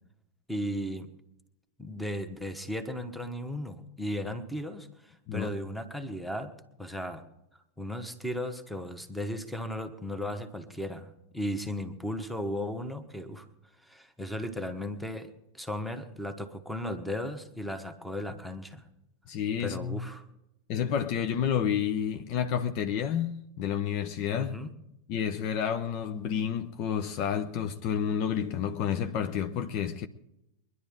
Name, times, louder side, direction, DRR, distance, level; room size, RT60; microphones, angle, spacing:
voice 1, 0.5-1.1 1.8-6.5 6.8-7.2 7.8-13.5 13.8-18.8 19.6-20.2 24.4-24.7, left 1 dB, ahead, 1.4 m, -36 dB
voice 2, 19.3-20.0 20.7-24.6 25.1-30.1, left 8 dB, 40° left, 0.8 m, -30 dB
23.5 x 11.0 x 3.7 m
figure-of-eight pair, 90°, 0 cm